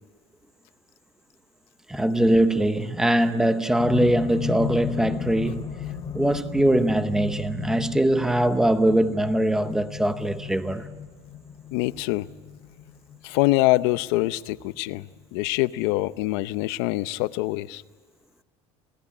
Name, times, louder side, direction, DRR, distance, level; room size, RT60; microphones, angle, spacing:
voice 1, 1.9-5.6 6.1-10.9, right 1 dB, 5° right, 0.8 m, -22 dB
sound 1, 3.8-15.9 16.9-17.0, left 8 dB, 30° left, 1.9 m, -35 dB
voice 2, 11.7-12.3 13.2-17.8, left 19 dB, 85° left, 0.7 m, -24 dB
28.0 x 17.0 x 10.0 m
cardioid pair, 170°, 13 cm